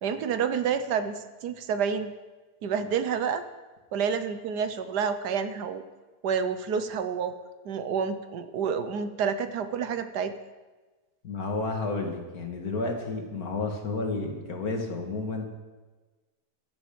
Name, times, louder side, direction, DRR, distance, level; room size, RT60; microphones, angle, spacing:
voice 1, 0.0-2.1 2.6-3.4 3.9-5.8 6.2-7.4 7.6-10.3, right 6 dB, 90° right, 10 dB, 1.5 m, -29 dB
voice 2, 11.2-15.5, left 3 dB, 65° left, 2 dB, 2.3 m, -31 dB
14.5 x 11.0 x 5.1 m, 1.3 s
omnidirectional pair, 1.7 m